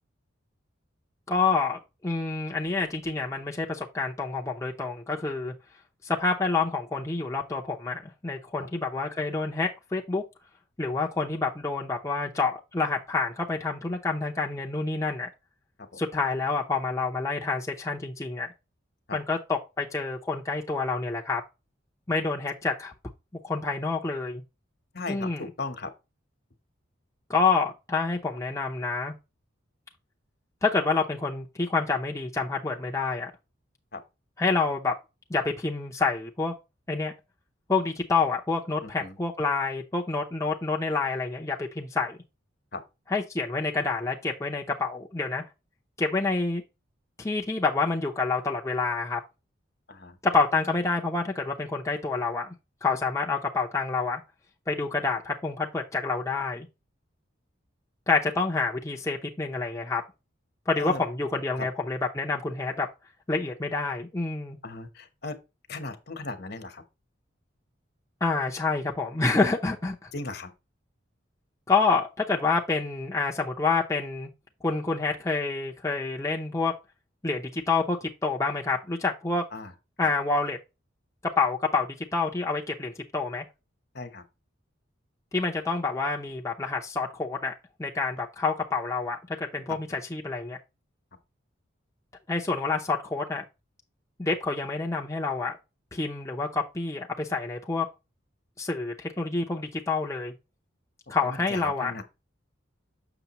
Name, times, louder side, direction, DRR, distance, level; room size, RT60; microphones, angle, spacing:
voice 1, 1.3-5.5 6.0-10.2 10.8-15.3 16.0-18.5 19.1-21.4 22.1-22.9 23.4-24.4 25.1-25.4 27.3-29.1 30.6-33.3 34.4-34.9 35.3-36.5 36.9-37.1 37.7-42.2 43.1-45.4 46.0-46.6 47.2-49.2 50.2-52.5 52.8-54.2 54.7-56.7 58.1-60.0 60.7-62.9 63.3-64.6 68.2-70.1 71.7-74.3 74.6-76.7 77.2-79.4 80.0-80.6 81.4-83.4 85.3-87.5 87.8-90.6 92.3-93.4 94.2-95.6 95.9-97.9 98.6-100.3 101.1-101.9, left 4 dB, 15° left, 0.6 m, -28 dB
voice 2, 24.9-25.9 33.9-34.0 38.8-39.2 42.7-42.8 49.9-50.2 60.8-61.0 61.6-61.7 64.6-65.4 65.7-66.8 70.1-70.5 79.5-79.7 83.9-84.2 89.9-90.0 101.2-102.0, left 3 dB, 55° left, 1.1 m, -37 dB
7.0 x 6.3 x 3.0 m
head